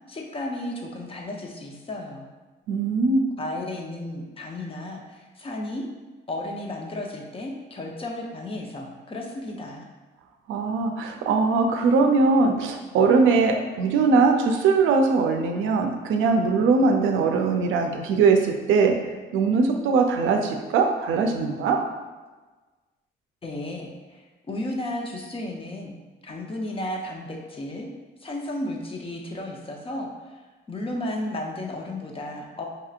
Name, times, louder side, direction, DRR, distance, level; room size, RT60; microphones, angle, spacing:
voice 1, 0.1-2.3 3.4-5.8 6.3-9.9 23.4-26.0 26.2-27.9 28.2-30.4 30.7-32.7, left 1 dB, 30° left, 1 dB, 0.7 m, -33 dB
voice 2, 2.7-3.2 10.5-19.0 19.3-21.8, right 4 dB, 85° right, 3 dB, 0.5 m, -21 dB
5.4 x 2.8 x 2.4 m, 1.3 s
cardioid pair, 90°, 20 cm